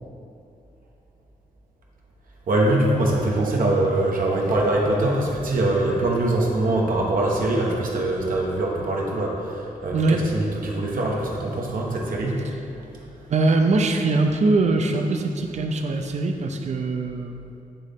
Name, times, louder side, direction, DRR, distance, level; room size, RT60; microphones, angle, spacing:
voice 1, 2.5-12.5 12.8-13.1, right 1 dB, 75° right, -2 dB, 1.1 m, -23 dB
voice 2, 13.3-17.3, right 3 dB, 55° right, 4 dB, 0.6 m, -22 dB
8.9 x 3.9 x 3.6 m, 2.6 s
wide cardioid pair, 110°, 14 cm